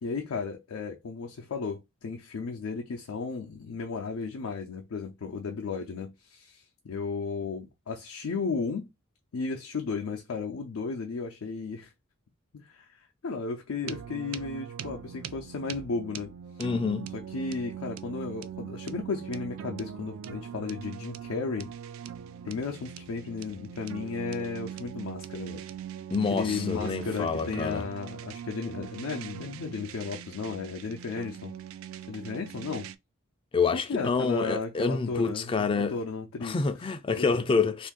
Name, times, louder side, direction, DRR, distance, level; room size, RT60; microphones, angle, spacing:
voice 1, 0.0-8.9 9.3-11.9 12.5-12.9 13.2-16.3 17.1-21.7 22.4-25.6 26.3-31.5 32.1-32.9 33.7-36.6 37.2-37.3, left 4 dB, 80° left, 0.5 m, -34 dB
sound 1, 13.8-33.0, right 9 dB, 65° right, 0.3 m, -41 dB
voice 2, 16.6-17.1 26.1-27.8 33.5-36.0 36.4-37.9, left 4 dB, 25° left, 0.3 m, -27 dB
2.6 x 2.5 x 3.6 m
head